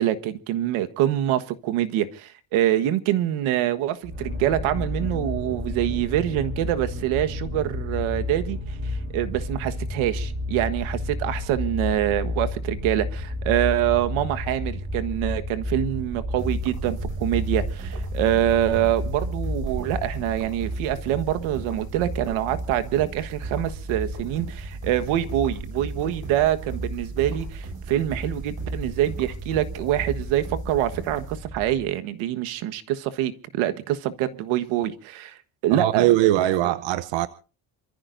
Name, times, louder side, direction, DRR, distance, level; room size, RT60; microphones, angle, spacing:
voice 1, 0.0-8.6 9.1-35.4 35.6-36.1, right 12 dB, 90° right, 1.5 m, -25 dB
sound 1, 4.0-20.3, left 1 dB, 25° right, 4.8 m, -31 dB
sound 2, 16.4-31.8, right 2 dB, 40° right, 6.7 m, -34 dB
voice 2, 35.7-37.3, right 14 dB, 65° right, 0.9 m, -21 dB
28.0 x 14.5 x 2.6 m
cardioid pair, 120°, 47 cm